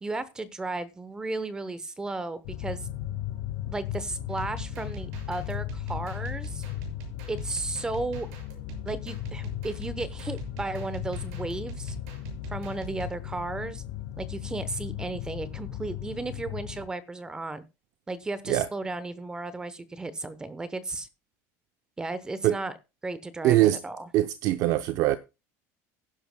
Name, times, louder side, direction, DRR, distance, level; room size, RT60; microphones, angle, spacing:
voice 1, 0.0-2.9 3.7-6.6 7.3-8.3 8.8-12.0 12.5-13.8 14.2-17.6 18.1-21.1 22.0-22.7 23.0-24.1, right 3 dB, 10° right, 0.9 m, -34 dB
sound 1, 2.4-16.9, left 13 dB, 80° left, 2.2 m, -36 dB
sound 2, 4.3-13.2, right 5 dB, 75° right, 6.7 m, -43 dB
voice 2, 23.4-23.8 24.1-25.2, right 14 dB, 45° right, 0.6 m, -22 dB
16.0 x 11.0 x 2.2 m
cardioid pair, 175°, 8 cm